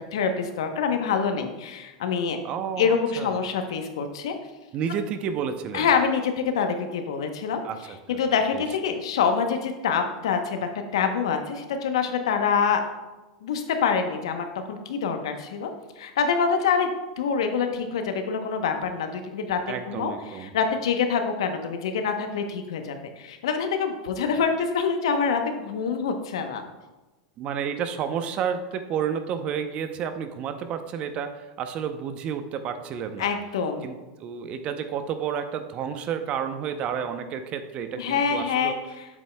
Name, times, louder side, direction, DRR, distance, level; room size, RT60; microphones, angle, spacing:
voice 1, 0.1-2.4 2.8-4.3 5.7-7.6 8.1-12.8 13.4-15.7 16.0-16.9 17.2-26.6 33.2-33.9 38.0-39.1, left 6 dB, 75° left, 6 dB, 0.9 m, -26 dB
voice 2, 2.4-3.3 4.7-5.9 7.6-8.2 8.5-8.6 19.7-20.5 27.4-33.3 33.8-38.7, right 7 dB, 45° right, 9 dB, 0.7 m, -31 dB
8.2 x 7.2 x 2.2 m, 1.1 s
hypercardioid pair, 100°, 3 cm